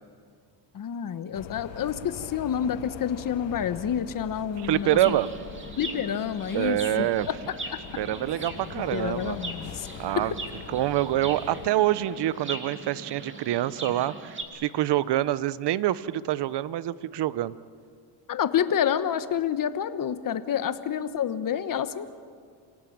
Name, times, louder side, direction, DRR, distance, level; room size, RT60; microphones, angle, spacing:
voice 1, 0.7-5.2 5.8-7.1 8.9-9.9 10.1-10.3 18.3-22.1, left 8 dB, 40° left, 12 dB, 1.3 m, -28 dB
sound 1, 1.3-11.7, left 11 dB, 65° left, 1.3 m, -43 dB
voice 2, 4.6-5.3 6.5-7.3 8.0-9.4 10.0-10.3 10.7-17.5, right 13 dB, 55° right, 17 dB, 0.9 m, -26 dB
Chirp tweet, 4.7-14.4, right 2 dB, 25° right, 3.0 m, -40 dB
28.0 x 17.5 x 8.8 m, 2.2 s
cardioid pair, 95°, 48 cm